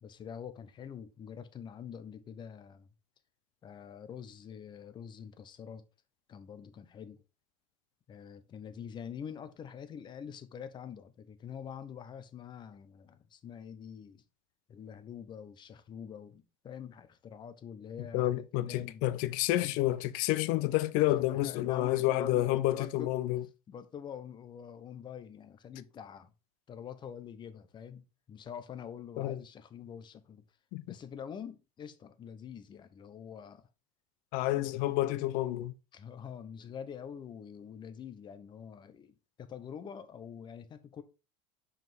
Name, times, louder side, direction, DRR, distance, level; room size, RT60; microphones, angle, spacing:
voice 1, 0.0-2.9 3.6-5.8 6.3-7.2 8.1-14.2 14.7-19.2 21.3-23.1 23.7-26.3 26.7-30.4 30.8-33.7 35.9-41.0, left 8 dB, 30° left, 0.8 m, -45 dB
voice 2, 18.1-23.4 29.2-29.4 30.7-30.9 34.3-35.7, left 15 dB, 60° left, 0.6 m, -29 dB
6.0 x 5.0 x 3.5 m
supercardioid pair, 135°, 16 cm